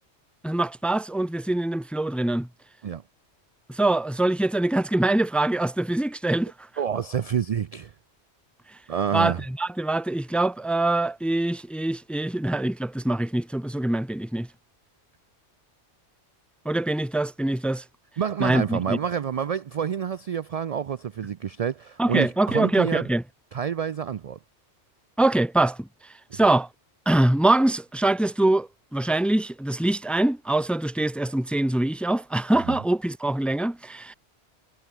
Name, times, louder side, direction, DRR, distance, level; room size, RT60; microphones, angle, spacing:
voice 1, 0.4-2.5 3.7-6.5 9.1-14.5 16.6-17.8 18.4-19.0 22.0-23.2 25.2-25.9 26.3-26.7 27.1-34.1, right 2 dB, ahead, 0.6 m, -24 dB
voice 2, 6.8-7.9 8.9-9.4 18.2-23.1 23.5-24.4 32.7-32.8, right 8 dB, 60° right, 0.4 m, -28 dB
omnidirectional pair, 1.2 m